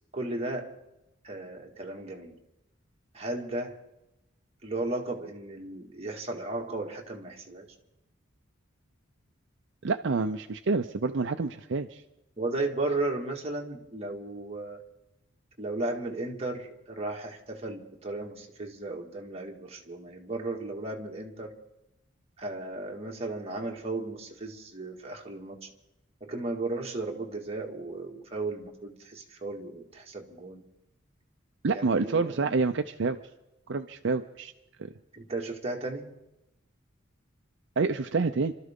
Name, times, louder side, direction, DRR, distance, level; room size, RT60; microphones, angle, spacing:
voice 1, 0.1-0.7 1.2-2.4 3.1-3.8 4.6-7.7 12.4-14.8 15.6-21.5 22.4-25.7 26.2-30.6 31.7-32.3 35.1-36.1, right 2 dB, 30° right, 0 dB, 2.0 m, -35 dB
voice 2, 9.8-12.0 31.6-33.2 33.7-34.5 34.8-34.9 37.8-38.5, right 4 dB, 65° right, 8 dB, 0.6 m, -28 dB
28.0 x 13.0 x 3.7 m, 0.93 s
head